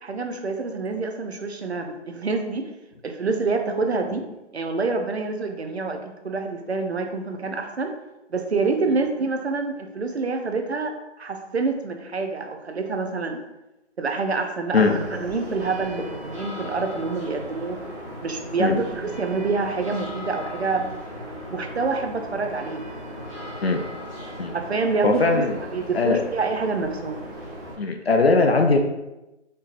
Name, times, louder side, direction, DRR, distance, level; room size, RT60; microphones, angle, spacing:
voice 1, 0.0-2.7 3.0-4.2 4.5-6.0 6.2-7.9 8.3-13.4 14.0-17.8 18.2-20.9 21.5-23.1 24.5-27.3, right 4 dB, 60° right, 5 dB, 0.6 m, -27 dB
sound 1, 14.7-27.7, equal, 5° left, 1.3 m, -37 dB
voice 2, 25.0-25.6 25.9-26.2 27.8-28.8, left 3 dB, 55° left, 4 dB, 0.5 m, -19 dB
4.4 x 3.0 x 2.5 m, 0.97 s
figure-of-eight pair, 180°, 36 cm